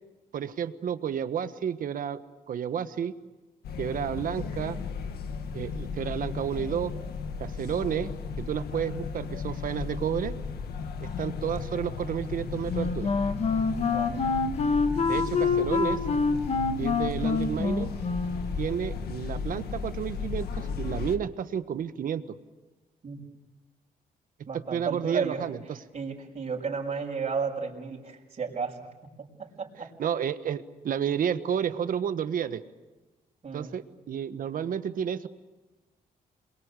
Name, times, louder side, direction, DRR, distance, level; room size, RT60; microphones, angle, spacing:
voice 1, 0.3-2.2 2.5-3.1 3.8-4.8 5.5-6.9 7.4-10.3 11.0-13.1 15.1-16.0 16.8-17.9 18.6-22.4 24.5-25.8 30.0-32.6 33.5-35.3, right 8 dB, 60° right, 11 dB, 1.4 m, -31 dB
sound 1, 3.6-21.2, left 5 dB, 85° left, 1.8 m, -35 dB
Wind instrument woodwind instrument, 12.7-18.6, left 4 dB, 40° left, 1.7 m, -26 dB
voice 2, 24.5-25.4 25.9-28.9 29.2-29.9 33.4-33.7, right 5 dB, 40° right, -2 dB, 5.7 m, -33 dB
27.5 x 22.5 x 8.3 m, 1.2 s
cardioid pair, 120°, 16 cm